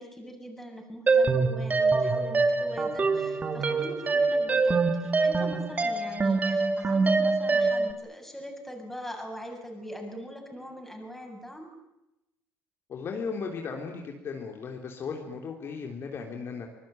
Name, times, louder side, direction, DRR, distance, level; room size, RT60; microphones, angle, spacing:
voice 1, 0.0-11.7, equal, 5° left, 2 dB, 7.5 m, -42 dB
sound 1, 1.1-7.9, right 3 dB, 25° right, 2.0 m, -25 dB
voice 2, 12.9-16.7, left 5 dB, 45° left, 2 dB, 3.4 m, -36 dB
25.5 x 19.5 x 9.1 m, 0.93 s
cardioid pair, 105°, 6 cm